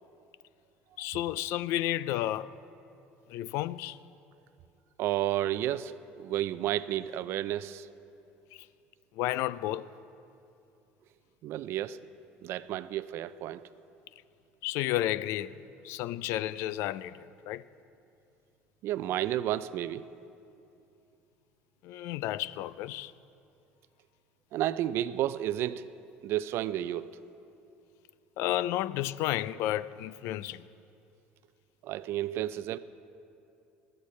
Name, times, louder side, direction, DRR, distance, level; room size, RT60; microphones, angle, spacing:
voice 1, 1.0-2.5 3.3-4.0 9.2-9.9 14.6-15.5 15.8-17.6 21.8-23.1 28.4-30.6 32.3-32.4, left 14 dB, 70° left, 0.4 m, -32 dB
voice 2, 5.0-7.9 11.4-12.0 12.4-13.6 18.8-20.0 24.5-25.9 26.2-27.2 31.8-32.8, right 12 dB, 60° right, 0.4 m, -31 dB
20.5 x 13.0 x 3.2 m
supercardioid pair, 90°, 5 cm